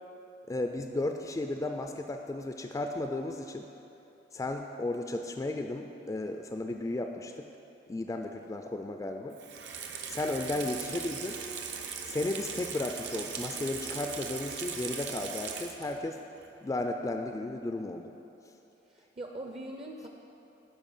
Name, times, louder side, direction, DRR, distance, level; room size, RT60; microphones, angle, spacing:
voice 1, 0.5-3.7 4.3-7.5 7.9-9.4 10.1-11.4 12.1-16.2 16.6-18.1, left 2 dB, 20° left, 4 dB, 0.3 m, -34 dB
Water tap faucet / Sink (filling or washing), 9.3-16.1 16.4-16.5, right 6 dB, 75° right, 0.8 m, -39 dB
voice 2, 10.5-10.9 18.9-20.1, right 1 dB, 35° right, 1 dB, 0.5 m, -43 dB
12.5 x 4.9 x 5.5 m, 2.9 s
head